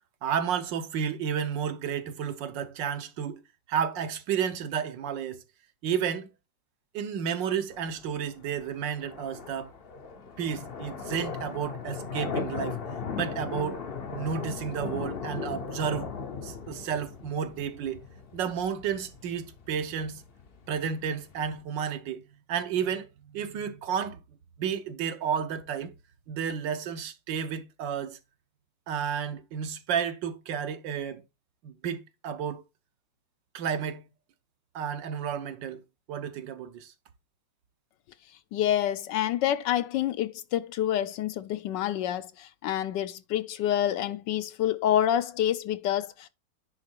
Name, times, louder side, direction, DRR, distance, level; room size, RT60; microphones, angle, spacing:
voice 1, 0.2-3.4 3.7-5.4 5.8-6.3 6.9-9.7 10.4-12.8 13.2-13.8 14.1-16.1 16.4-18.0 18.3-20.2 20.7-22.2 22.5-24.2 24.6-25.9 26.3-28.2 28.9-31.2 31.6-32.6 33.5-34.1 34.7-35.8 36.1-36.9, right 7 dB, 70° right, 1.5 m, -31 dB
sound 1, 7.7-21.6, left 5 dB, 50° left, 0.7 m, -38 dB
voice 2, 38.5-46.3, left 11 dB, 75° left, 1.2 m, -27 dB
9.8 x 3.8 x 4.4 m
omnidirectional pair, 2.1 m